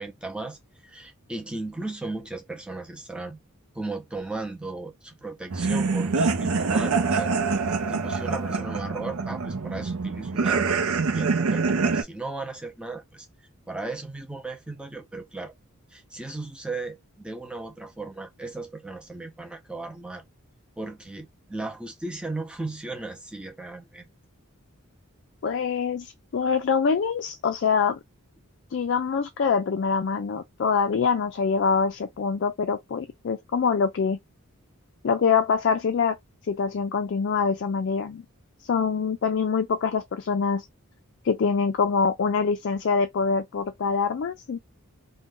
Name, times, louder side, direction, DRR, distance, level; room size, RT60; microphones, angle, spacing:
voice 1, 0.0-3.4 3.7-7.5 7.9-13.3 13.7-15.5 15.9-20.2 20.8-24.0, right 2 dB, 5° right, 0.5 m, -36 dB
sound 1, 5.5-12.0, right 4 dB, 70° right, 0.5 m, -25 dB
voice 2, 25.4-28.0 28.7-34.2 35.0-36.2 36.5-38.2 38.6-40.6 41.2-44.6, left 5 dB, 50° left, 0.3 m, -24 dB
2.5 x 2.2 x 3.5 m
head